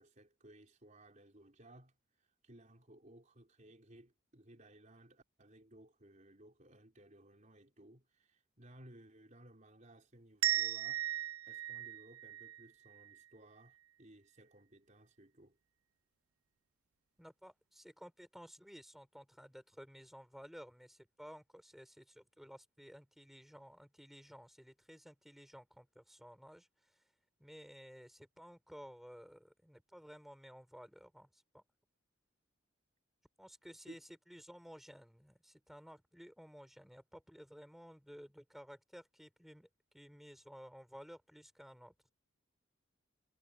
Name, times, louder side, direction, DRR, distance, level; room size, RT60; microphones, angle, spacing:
voice 1, 0.0-11.1 11.5-15.6 33.9-34.0, right 1 dB, 35° right, 4.5 m, -60 dB
sound 1, 10.4-13.2, right 14 dB, 85° right, 0.4 m, -37 dB
voice 2, 17.2-27.0 27.4-31.6 33.4-34.0 34.3-39.7 39.9-41.9, equal, ahead, 6.4 m, -55 dB
head